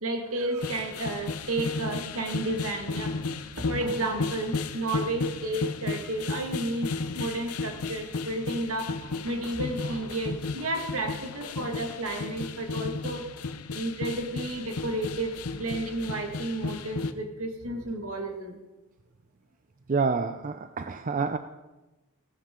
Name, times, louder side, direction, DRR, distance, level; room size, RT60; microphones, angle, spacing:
voice 1, 0.0-3.2 3.6-6.9 7.1-8.9 9.2-13.4 13.7-18.6, right 2 dB, 70° right, 3 dB, 1.9 m, -32 dB
sound 1, 0.6-17.1, left 4 dB, 90° left, 0.8 m, -34 dB
voice 2, 19.9-21.4, right 4 dB, 35° right, 9 dB, 0.5 m, -28 dB
16.5 x 13.0 x 3.8 m, 1.1 s
head